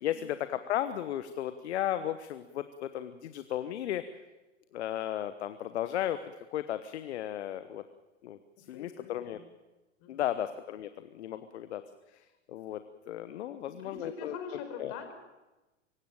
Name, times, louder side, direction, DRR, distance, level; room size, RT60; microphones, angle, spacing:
voice 1, 0.0-4.0 4.7-7.8 8.2-9.4 10.1-11.8 12.1-14.4 14.8-14.9, left 11 dB, 65° left, 12 dB, 1.2 m, -35 dB
voice 2, 8.7-9.4 10.0-10.3 13.5-15.1, left 5 dB, 45° left, 7 dB, 4.7 m, -44 dB
24.5 x 16.5 x 9.0 m, 1.1 s
figure-of-eight pair, 95°, 36 cm